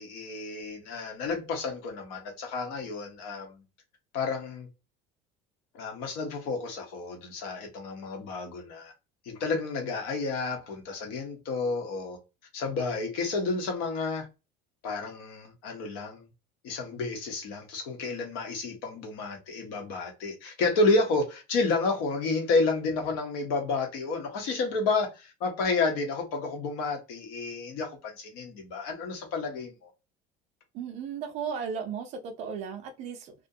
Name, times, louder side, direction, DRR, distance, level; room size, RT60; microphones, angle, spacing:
voice 1, 0.0-3.6 4.1-4.7 5.7-8.9 9.2-12.2 12.5-14.3 14.8-16.3 16.6-29.9, left 3 dB, 60° left, 0.9 m, -30 dB
voice 2, 30.7-33.3, right 7 dB, 40° right, 0.4 m, -35 dB
2.4 x 2.1 x 2.5 m
cardioid pair, 180°, 18 cm